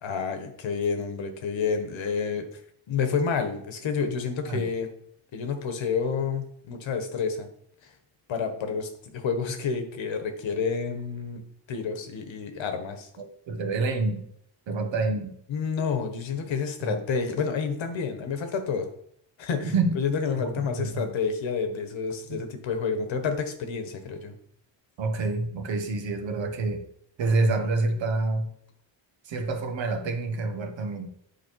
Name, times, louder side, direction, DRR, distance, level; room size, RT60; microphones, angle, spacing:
voice 1, 0.0-2.6 2.9-4.9 5.3-7.5 8.3-11.4 11.7-13.1 15.5-18.9 19.4-24.3, left 5 dB, 70° left, 6 dB, 1.4 m, -29 dB
voice 2, 13.2-14.3 14.7-15.4 16.8-17.0 19.6-19.9 20.3-21.1 22.3-22.4 25.0-26.8 27.2-28.5 29.2-31.2, right 3 dB, 65° right, 6 dB, 1.3 m, -27 dB
8.5 x 4.8 x 4.7 m, 0.68 s
cardioid pair, 125°, 48 cm